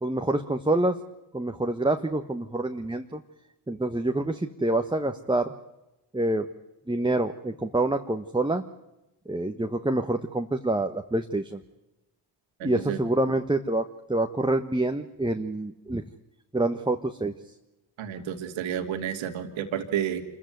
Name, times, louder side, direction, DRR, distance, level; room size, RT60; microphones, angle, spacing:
voice 1, 0.0-1.0 1.3-3.2 3.7-5.5 6.1-6.5 6.9-8.6 9.3-11.6 12.6-16.0 16.5-17.3, right 2 dB, 10° right, 5 dB, 1.4 m, -27 dB
voice 2, 12.6-13.0 18.0-20.2, right 9 dB, 75° right, 7 dB, 2.5 m, -31 dB
26.5 x 15.0 x 9.4 m, 0.97 s
hypercardioid pair, 45°, 47 cm